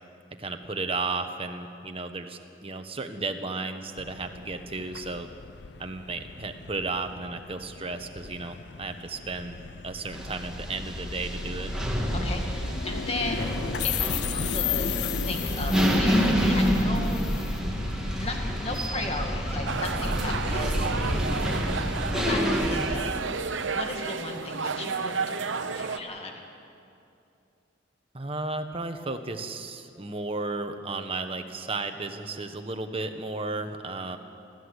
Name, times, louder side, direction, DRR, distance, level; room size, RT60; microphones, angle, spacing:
voice 1, 0.4-5.3 5.8-9.6 9.8-11.8 20.3-20.6 28.1-34.2, right 3 dB, 30° right, 7 dB, 1.2 m, -34 dB
sound 1, 4.0-19.6, left 7 dB, 60° left, 0.6 m, -36 dB
sound 2, 10.1-23.0, equal, 5° right, 2.2 m, -28 dB
voice 2, 12.1-14.9 15.2-17.5 18.2-21.1 22.3-26.3, left 2 dB, 30° left, 2 dB, 2.2 m, -36 dB
sound 3, 19.7-26.0, right 5 dB, 85° right, 1.0 m, -31 dB
29.5 x 13.5 x 8.2 m, 2.7 s
head